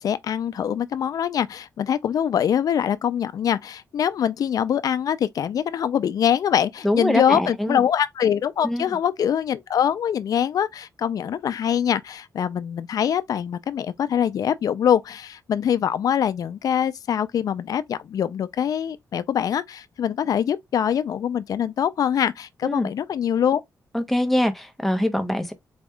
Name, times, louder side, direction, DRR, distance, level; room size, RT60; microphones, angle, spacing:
voice 1, 0.0-23.6, left 9 dB, 65° left, 0.5 m, -23 dB
voice 2, 6.8-7.8 8.6-8.9 22.6-22.9 23.9-25.5, left 1 dB, 5° left, 0.8 m, -23 dB
4.3 x 2.3 x 3.6 m
cardioid pair, 110°, 7 cm